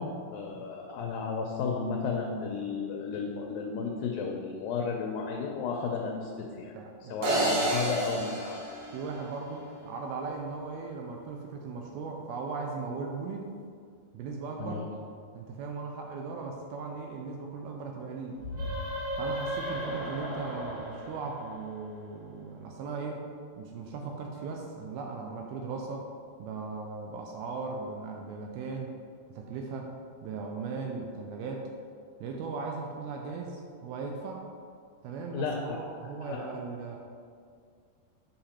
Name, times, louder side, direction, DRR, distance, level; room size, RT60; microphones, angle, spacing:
voice 1, 0.0-6.8 7.1-8.6 14.6-14.9 35.3-36.5, left 5 dB, 85° left, 1 dB, 2.0 m, -33 dB
voice 2, 6.7-7.5 8.9-13.5 14.1-14.8 15.3-18.4 19.2-23.3 23.6-26.1 26.4-29.0 29.3-29.9 30.2-31.7 32.2-34.5 35.0-37.0, right 4 dB, 85° right, 1 dB, 2.3 m, -38 dB
sound 1, 7.2-9.6, right 1 dB, 65° right, 3.0 m, -30 dB
sound 2, 18.4-22.0, equal, 50° right, 1.1 m, -35 dB
7.9 x 5.8 x 4.3 m, 2.2 s
omnidirectional pair, 4.8 m